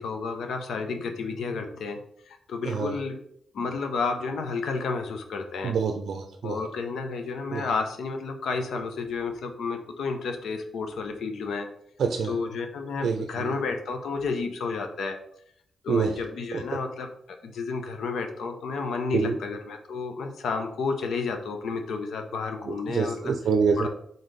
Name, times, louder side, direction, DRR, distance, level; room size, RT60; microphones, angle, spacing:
voice 1, 0.0-2.0 2.3-3.2 3.5-5.8 6.4-11.7 12.2-15.2 15.8-17.1 17.4-23.3 23.8-23.9, left 4 dB, 80° left, 6 dB, 0.7 m, -31 dB
voice 2, 5.6-6.6 7.5-7.7 12.0-12.3 13.0-13.5 15.9-16.2 16.5-16.6 19.1-19.3 22.7-23.9, right 5 dB, 65° right, 4 dB, 0.5 m, -26 dB
4.0 x 3.8 x 3.3 m, 0.69 s
wide cardioid pair, 125°, 0 cm